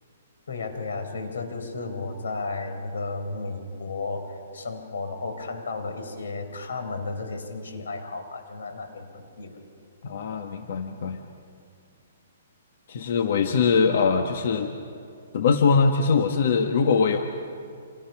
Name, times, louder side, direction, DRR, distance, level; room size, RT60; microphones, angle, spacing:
voice 1, 0.5-9.6, left 3 dB, 85° left, 6 dB, 4.5 m, -33 dB
voice 2, 10.0-11.2 12.9-14.7 15.3-17.2, left 5 dB, 60° left, 5 dB, 1.4 m, -22 dB
29.5 x 27.0 x 6.0 m, 2.5 s
hypercardioid pair, 165°, 0 cm